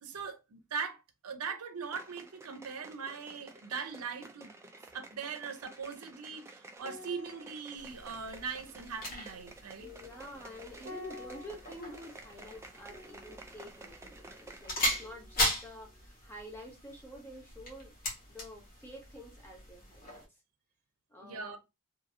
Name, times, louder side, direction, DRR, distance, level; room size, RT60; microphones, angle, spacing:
voice 1, 0.0-4.5 4.9-9.9 21.2-21.6, right 5 dB, 90° right, 0.6 m, -40 dB
sound 1, 1.8-15.1 15.4-15.5, right 2 dB, 10° right, 0.3 m, -52 dB
sound 2, 6.8-15.5 15.8-16.0, left 2 dB, 55° right, 0.8 m, -52 dB
sound 3, 7.8-20.3, left 1 dB, 40° left, 1.2 m, -39 dB
voice 2, 9.8-17.9 18.3-20.4 21.1-21.6, left 1 dB, 10° left, 0.9 m, -48 dB
2.7 x 2.6 x 2.7 m
head